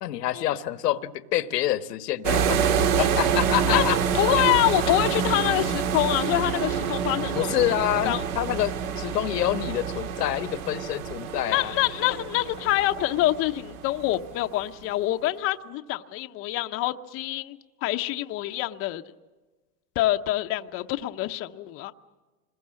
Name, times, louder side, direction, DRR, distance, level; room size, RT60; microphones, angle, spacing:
voice 1, 0.0-4.0 4.3-4.5 7.3-11.7, left 13 dB, 90° left, 1.4 m, -27 dB
sound 1, 2.2-14.3, right 7 dB, 65° right, 1.9 m, -27 dB
voice 2, 3.7-7.8 8.0-8.2 11.5-19.0 20.0-21.9, left 15 dB, 30° left, 0.7 m, -26 dB
26.5 x 21.0 x 7.5 m
supercardioid pair, 140°, 47 cm